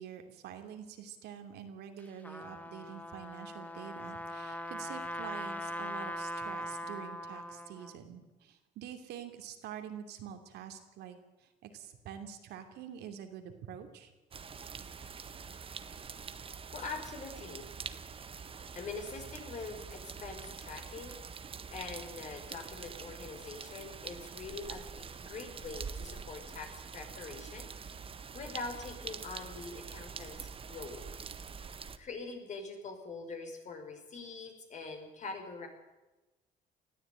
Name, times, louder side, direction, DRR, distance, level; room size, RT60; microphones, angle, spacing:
voice 1, 0.0-14.1, right 8 dB, 80° right, 6 dB, 3.0 m, -46 dB
Trumpet, 2.0-7.9, left 1 dB, 10° left, 1.7 m, -41 dB
sound 1, 14.3-32.0, right 6 dB, 35° right, 1.4 m, -45 dB
voice 2, 16.7-17.7 18.7-31.2 32.0-35.7, left 4 dB, 45° left, 4 dB, 5.2 m, -44 dB
20.0 x 14.0 x 9.2 m, 1.1 s
cardioid pair, 110°, 17 cm